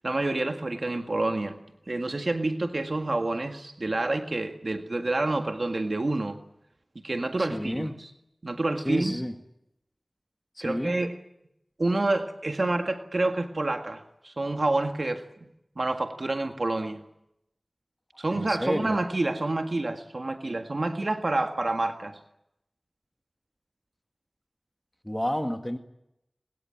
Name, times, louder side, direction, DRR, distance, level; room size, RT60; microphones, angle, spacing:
voice 1, 0.0-1.6 1.9-6.4 7.0-7.9 8.4-9.2 10.6-11.1 11.8-15.2 15.8-17.0 18.2-22.2, right 2 dB, 60° right, 6 dB, 1.8 m, -28 dB
voice 2, 7.4-8.0 8.8-9.4 10.5-11.0 18.3-19.0 25.0-25.8, equal, 15° left, 6 dB, 1.9 m, -31 dB
23.5 x 21.5 x 8.8 m, 0.82 s
wide cardioid pair, 50°, 0 cm